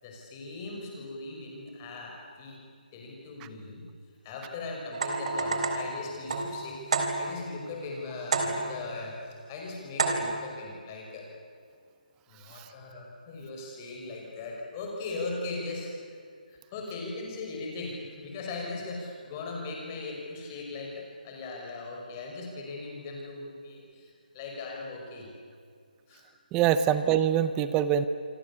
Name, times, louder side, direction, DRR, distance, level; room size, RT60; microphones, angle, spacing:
voice 1, 0.0-2.6 2.9-3.9 4.2-11.3 12.3-15.9 16.5-25.3 26.1-26.2, left 3 dB, 20° left, 0 dB, 5.6 m, -39 dB
sound 1, 4.9-7.5 8.3-8.9 10.0-10.5, right 3 dB, 45° right, 3.7 m, -30 dB
voice 2, 26.5-28.1, right 9 dB, 10° right, 12 dB, 0.6 m, -24 dB
28.0 x 24.0 x 8.6 m, 2.2 s
hypercardioid pair, 175°, 5 cm